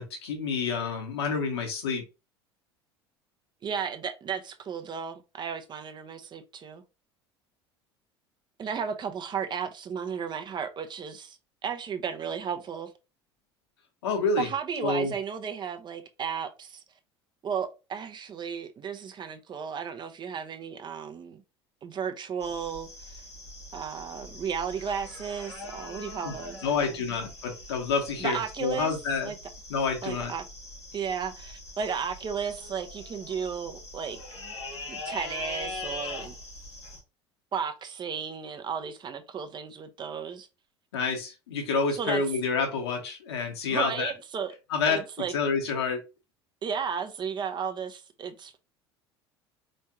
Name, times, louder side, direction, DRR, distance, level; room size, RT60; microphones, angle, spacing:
voice 1, 0.0-2.0 14.0-14.5 14.8-15.1 26.2-26.3 26.6-29.3 29.7-30.3 40.9-44.1 44.7-45.0 45.3-46.0, left 4 dB, 70° left, 1.3 m, -28 dB
voice 2, 3.6-6.8 8.6-12.9 14.4-16.8 17.4-21.4 21.8-23.2 23.7-27.1 28.2-28.9 29.2-29.4 30.0-30.4 30.9-34.2 34.9-36.3 37.5-40.5 42.0-42.2 43.7-44.5 44.9-45.3 46.6-48.6, right 7 dB, 35° right, 0.7 m, -34 dB
sound 1, 22.4-37.0, left 2 dB, 85° left, 1.4 m, -42 dB
4.4 x 3.2 x 2.8 m
figure-of-eight pair, 70°, 14 cm